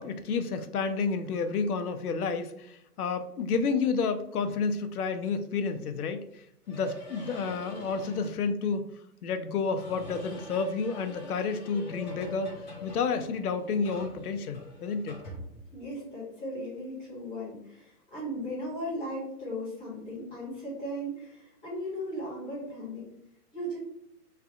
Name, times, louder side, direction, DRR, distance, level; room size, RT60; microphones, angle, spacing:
voice 1, 0.0-6.2 6.7-8.8 9.2-12.5 12.8-15.2, left 5 dB, 70° left, 9 dB, 0.6 m, -30 dB
sound 1, 6.6-8.4 9.7-16.0, equal, 30° left, 0.7 m, -45 dB
voice 2, 15.7-23.1 23.5-23.8, equal, 10° left, -9 dB, 1.3 m, -37 dB
3.3 x 2.4 x 3.6 m, 0.77 s
hypercardioid pair, 165°, 47 cm